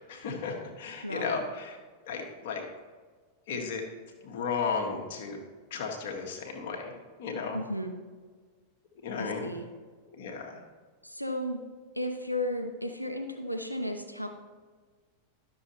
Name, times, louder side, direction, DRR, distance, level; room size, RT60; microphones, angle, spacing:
voice 1, 0.1-1.8 2.0-2.6 3.5-3.8 4.2-5.4 5.7-6.9 7.2-7.6 9.0-9.5 10.1-10.6, left 5 dB, 55° left, 1 dB, 1.7 m, -34 dB
voice 2, 1.0-1.4 7.5-7.9 9.2-9.6 11.0-11.6 12.0-14.3, left 1 dB, 90° left, 5 dB, 0.9 m, -34 dB
12.5 x 6.8 x 2.9 m, 1.5 s
figure-of-eight pair, 90°, 0 cm